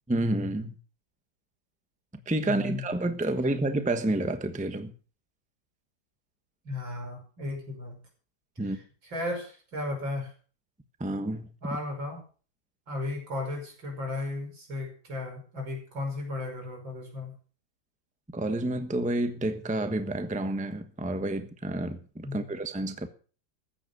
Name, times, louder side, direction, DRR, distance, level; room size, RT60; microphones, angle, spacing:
voice 1, 0.1-0.7 2.3-4.9 8.6-8.8 11.0-11.5 18.3-23.1, right 1 dB, 5° right, 1.0 m, -29 dB
voice 2, 2.4-2.9 6.6-8.0 8.7-8.8 9.0-10.3 11.6-12.2 12.9-17.3 22.2-22.4, left 2 dB, 85° right, 6.3 m, -35 dB
14.5 x 9.5 x 6.8 m
omnidirectional pair, 2.0 m